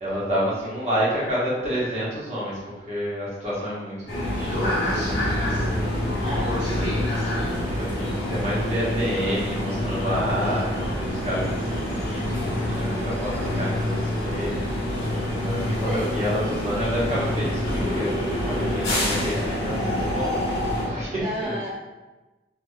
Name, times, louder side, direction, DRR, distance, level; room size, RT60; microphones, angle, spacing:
voice 1, 0.0-4.6 5.5-6.2 7.7-14.7 15.4-20.4 20.8-21.6, equal, 40° right, -8 dB, 1.1 m, -29 dB
sound 1, 4.1-20.9, left 1 dB, 80° left, 1.2 m, -26 dB
voice 2, 6.2-6.8 8.8-8.9 15.8-16.1 21.2-21.7, equal, 20° right, -9 dB, 0.5 m, -31 dB
3.2 x 2.9 x 2.2 m, 1.1 s
head